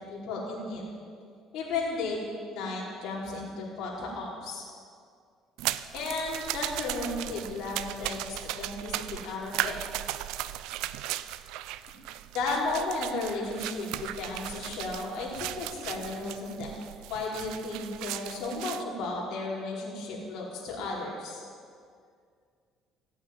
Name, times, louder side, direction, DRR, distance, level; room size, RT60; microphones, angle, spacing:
voice 1, 0.1-0.8 1.5-2.2 2.5-4.6 5.9-9.7 12.3-16.7 17.1-21.4, left 3 dB, 65° left, -5 dB, 4.8 m, -34 dB
sound 1, 5.6-18.8, right 14 dB, 85° right, 0.5 m, -37 dB
16.0 x 8.9 x 9.8 m, 2.2 s
cardioid pair, 120°, 0 cm